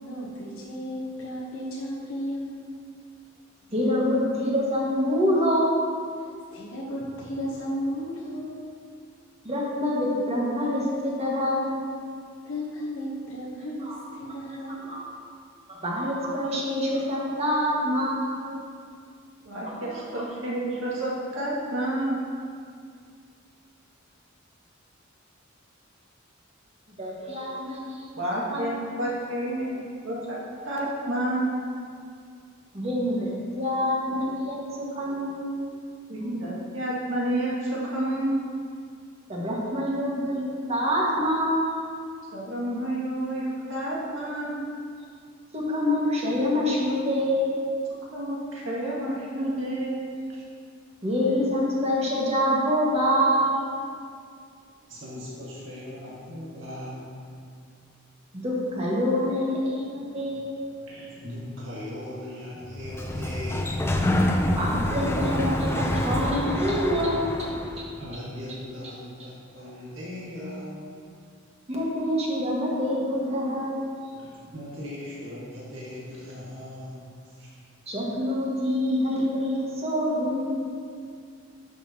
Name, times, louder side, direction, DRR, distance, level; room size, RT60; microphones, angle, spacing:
voice 1, 0.0-2.7 6.2-8.6 12.4-14.9, equal, 90° left, -5 dB, 1.0 m, -34 dB
voice 2, 3.7-5.8 9.4-11.9 13.8-14.0 14.5-15.1 15.7-18.5 19.6-20.2 27.0-28.1 28.5-28.7 32.7-35.6 39.3-41.6 45.5-47.6 51.0-53.7 58.3-60.6 64.6-67.5 67.8-67.9 71.7-73.9 77.9-80.7, equal, 30° right, -4 dB, 1.6 m, -26 dB
voice 3, 19.5-22.2 28.1-28.7 29.0-30.4 30.6-31.5 36.1-38.4 42.3-44.6 48.1-50.2, right 1 dB, 90° right, -5 dB, 2.0 m, -29 dB
voice 4, 54.9-57.2 60.0-60.1 60.8-63.9 66.9-70.9 74.0-77.5, left 1 dB, 70° right, -7 dB, 1.7 m, -39 dB
Sliding door, 62.7-67.8, left 1 dB, 15° left, 0.5 m, -26 dB
10.5 x 6.4 x 2.8 m, 2.2 s
head